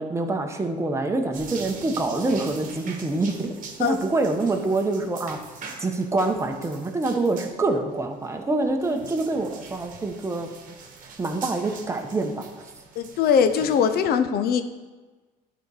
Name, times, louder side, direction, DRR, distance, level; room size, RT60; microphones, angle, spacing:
voice 1, 0.0-5.4 5.8-10.5 11.2-12.4, right 2 dB, 15° right, 3 dB, 1.0 m, -26 dB
sound 1, 1.3-14.1, right 5 dB, 50° right, 1.3 m, -43 dB
voice 2, 13.0-14.6, left 7 dB, 65° left, 10 dB, 0.7 m, -21 dB
11.0 x 4.0 x 4.9 m, 1.3 s
cardioid pair, 110°, 17 cm